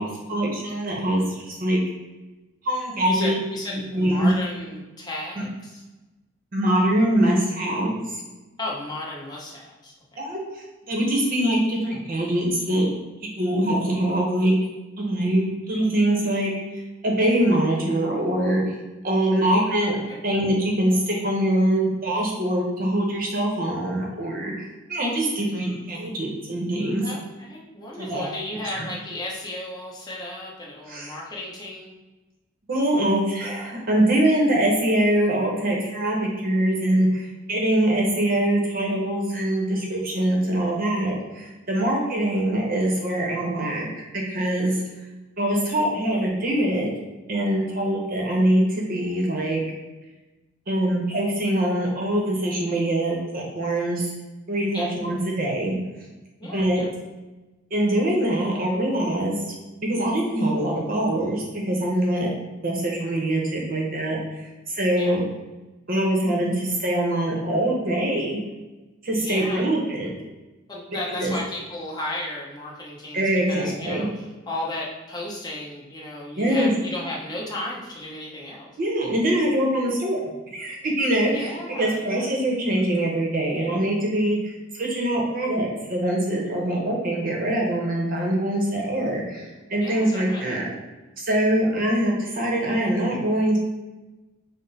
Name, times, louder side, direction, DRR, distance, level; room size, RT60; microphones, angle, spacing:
voice 1, 0.0-1.8 2.6-3.3 3.7-4.3 5.4-5.5 6.5-8.2 10.2-12.9 13.4-14.5 15.0-18.7 19.0-20.0 20.2-27.0 28.0-28.2 28.7-28.9 30.9-31.1 32.7-43.9 44.1-44.8 45.4-46.9 47.3-49.6 50.7-54.1 54.5-55.8 56.5-56.8 57.7-59.4 59.8-62.3 62.6-65.2 65.9-68.4 69.0-70.1 71.1-71.3 73.1-74.1 76.4-76.7 78.8-80.2 80.5-81.5 81.8-90.7 91.2-93.6, right 1 dB, 45° right, -2 dB, 0.7 m, -23 dB
voice 2, 3.0-5.8 8.6-10.2 19.9-20.2 27.0-31.9 54.7-54.9 56.4-56.9 64.9-65.1 69.2-69.7 70.7-78.7 81.3-82.3 89.8-90.6, left 1 dB, 20° left, -4 dB, 0.8 m, -34 dB
5.7 x 2.0 x 4.0 m, 1.1 s
head